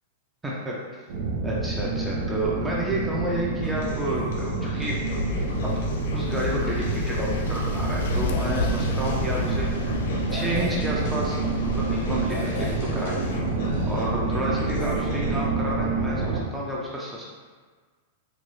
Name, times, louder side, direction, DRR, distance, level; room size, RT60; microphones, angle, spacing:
voice 1, 0.4-0.8 1.4-5.0 5.6-5.8 6.1-9.8 10.3-13.3 13.9-17.3, right 1 dB, 5° right, -5 dB, 0.3 m, -30 dB
sound 1, 1.1-16.4, right 2 dB, 75° right, 0.6 m, -28 dB
sound 2, 3.6-15.4, left 1 dB, 60° left, 0.7 m, -36 dB
sound 3, 5.1-13.4, left 3 dB, 75° left, 0.3 m, -35 dB
3.7 x 2.2 x 3.1 m, 1.5 s
supercardioid pair, 175°, 0 cm